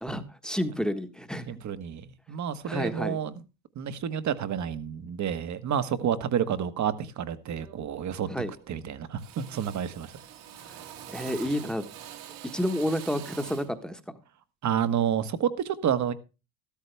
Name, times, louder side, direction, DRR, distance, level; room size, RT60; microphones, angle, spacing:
voice 1, 0.0-1.5 2.6-3.2 8.3-8.5 10.6-10.8 11.1-11.8 12.5-14.0, equal, ahead, 1.4 m, -30 dB
voice 2, 1.5-3.3 3.7-8.3 8.7-10.1 14.6-16.1, right 8 dB, 40° right, 1.4 m, -29 dB
Drill, 6.9-7.1 7.5-8.0 8.3-8.8 9.2-13.8, right 10 dB, 75° right, 2.9 m, -45 dB
13.5 x 13.0 x 3.4 m
supercardioid pair, 95°, 44 cm